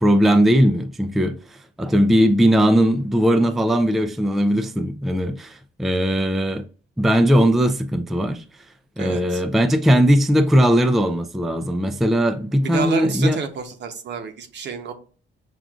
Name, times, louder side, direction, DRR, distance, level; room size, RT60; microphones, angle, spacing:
voice 1, 0.0-1.4 1.8-6.7 7.0-8.4 9.0-13.4, equal, ahead, 0.3 m, -18 dB
voice 2, 9.0-9.4 12.6-14.9, right 5 dB, 65° right, 0.8 m, -29 dB
6.2 x 2.4 x 2.4 m
cardioid pair, 90°, 20 cm